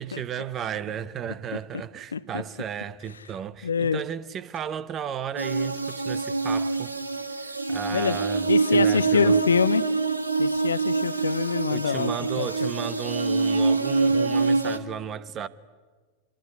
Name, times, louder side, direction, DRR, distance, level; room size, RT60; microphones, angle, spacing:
voice 1, 0.0-6.9 7.4-9.4 11.7-15.5, right 9 dB, 30° right, 1.0 m, -34 dB
voice 2, 2.1-2.4 3.6-4.0 7.9-8.2 8.5-9.9 10.4-12.7, left 6 dB, 70° left, 0.7 m, -25 dB
sound 1, 5.4-14.8, right 4 dB, 80° right, 1.6 m, -25 dB
26.0 x 22.5 x 9.8 m
figure-of-eight pair, 90°, 0 cm